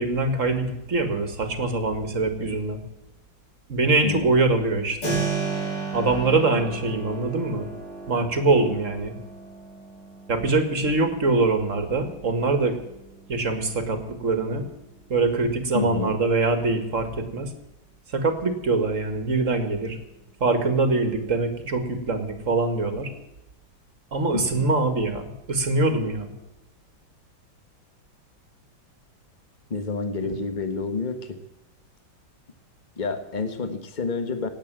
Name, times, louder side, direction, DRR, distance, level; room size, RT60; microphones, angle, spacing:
voice 1, 0.0-2.8 3.7-5.2 5.9-7.7 8.1-9.2 10.3-12.8 13.3-14.7 15.1-17.5 18.1-20.0 20.4-23.1 24.1-26.3 30.2-30.4, right 3 dB, 40° right, 8 dB, 2.2 m, -23 dB
voice 2, 4.0-4.3 15.7-16.2 24.3-24.7 29.7-31.4 33.0-34.5, left 4 dB, 25° left, 8 dB, 1.5 m, -29 dB
Keyboard (musical), 5.0-15.7, right 4 dB, 60° left, 4.8 m, -35 dB
18.5 x 8.7 x 7.6 m, 0.95 s
omnidirectional pair, 2.2 m